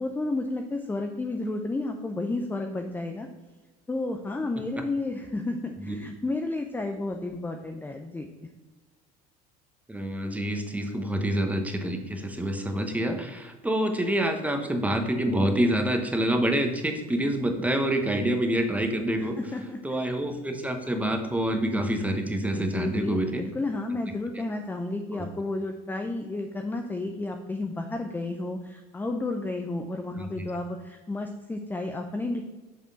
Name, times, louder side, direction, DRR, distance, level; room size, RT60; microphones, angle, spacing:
voice 1, 0.0-3.3 3.9-8.3 19.2-20.0 22.5-32.4, left 2 dB, 10° left, 5 dB, 0.5 m, -32 dB
voice 2, 9.9-19.4 19.8-23.4 25.1-25.3 30.1-30.5, right 1 dB, 5° right, 5 dB, 0.9 m, -27 dB
7.5 x 3.4 x 4.0 m, 1.2 s
supercardioid pair, 90°, 19 cm